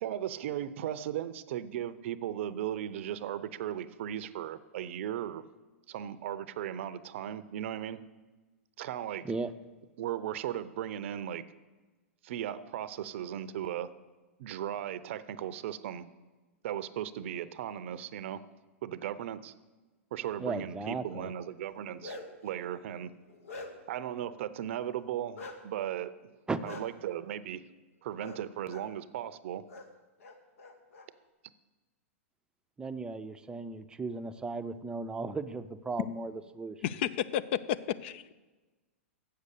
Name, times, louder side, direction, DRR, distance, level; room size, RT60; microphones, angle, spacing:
voice 1, 0.0-5.4 5.9-8.0 8.8-9.3 10.0-11.4 12.2-13.9 14.4-16.1 16.6-18.4 18.8-19.5 20.1-22.2 22.4-23.1 23.9-26.1 26.6-27.6 28.0-29.6, right 11 dB, 60° right, 15 dB, 0.6 m, -36 dB
voice 2, 20.4-21.3 26.5-26.6 32.8-36.8, right 3 dB, 10° right, 10 dB, 0.5 m, -36 dB
Bark, 21.7-22.5 23.0-24.0 25.3-25.6 26.6-26.8 28.2-28.4 28.6-28.8 29.7-29.8 30.2-31.1, left 2 dB, 80° left, 1.3 m, -45 dB
voice 3, 36.8-37.6 38.0-38.3, left 10 dB, 55° left, 16 dB, 0.5 m, -32 dB
8.0 x 6.7 x 8.2 m, 1.2 s
hypercardioid pair, 125°, 7 cm